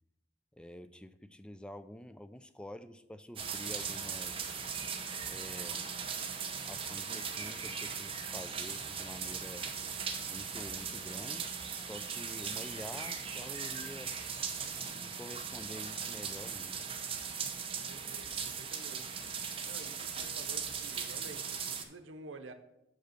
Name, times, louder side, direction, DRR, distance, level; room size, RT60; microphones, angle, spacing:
voice 1, 0.5-4.6 5.3-5.9 6.6-9.7 10.3-14.1 14.8-16.8, left 1 dB, 5° left, 12 dB, 0.3 m, -48 dB
sound 1, 3.4-21.8, right 6 dB, 30° right, 0.7 m, -39 dB
voice 2, 17.9-19.2 19.6-22.5, right 3 dB, 80° right, 8 dB, 0.8 m, -50 dB
6.2 x 5.4 x 6.4 m, 0.87 s
head